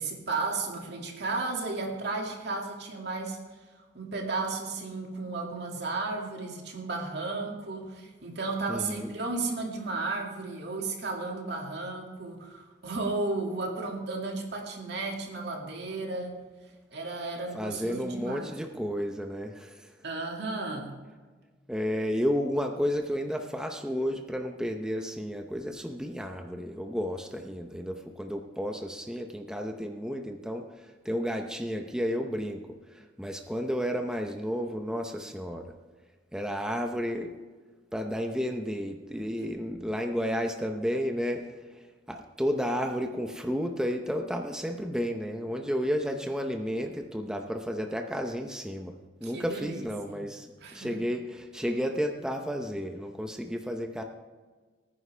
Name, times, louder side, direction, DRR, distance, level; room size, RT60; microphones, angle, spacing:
voice 1, 0.0-3.4 3.9-16.4 16.9-18.6 20.0-21.0 49.2-50.3 50.6-50.9, right 3 dB, 65° right, 1 dB, 2.2 m, -34 dB
voice 2, 8.7-9.1 17.5-19.9 21.7-35.7 36.3-37.3 37.9-41.4 41.7-48.9 49.2-50.5 50.7-54.0, equal, 5° right, 4 dB, 0.7 m, -32 dB
18.5 x 9.7 x 3.3 m, 1.4 s
head